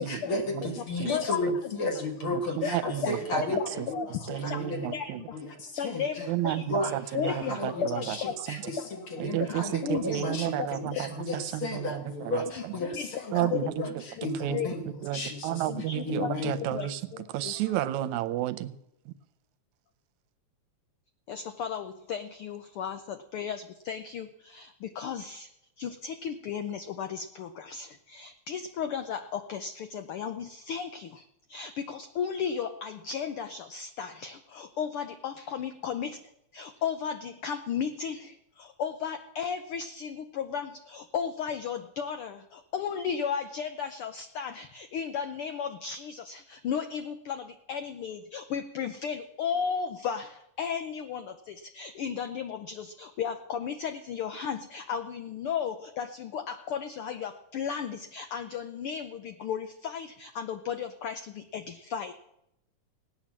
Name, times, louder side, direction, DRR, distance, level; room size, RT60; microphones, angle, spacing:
voice 1, 0.0-5.0 5.3-7.0 7.2-10.6 10.9-14.8 15.1-15.6 16.1-16.6, left 2 dB, 50° left, 3 dB, 2.2 m, -34 dB
voice 2, 1.1-1.4 2.6-2.8 3.0-4.1 4.5-4.6 4.9-5.4 5.8-6.6 7.1-8.5 8.8-8.9 9.2-9.3 9.8-11.0 12.5-13.9 14.2-14.7 15.7-17.5 21.3-25.5 25.8-36.2 36.5-62.1, left 7 dB, 80° left, 8 dB, 1.2 m, -35 dB
voice 3, 2.2-3.5 3.8-3.9 4.3-5.2 6.3-8.2 8.5-8.6 9.2-12.8 13.3-13.7 14.4-14.6 14.9-17.0 17.3-18.8 19.1-19.2, right 13 dB, 80° right, 13 dB, 2.1 m, -32 dB
18.0 x 9.0 x 7.4 m, 0.81 s
omnidirectional pair, 3.3 m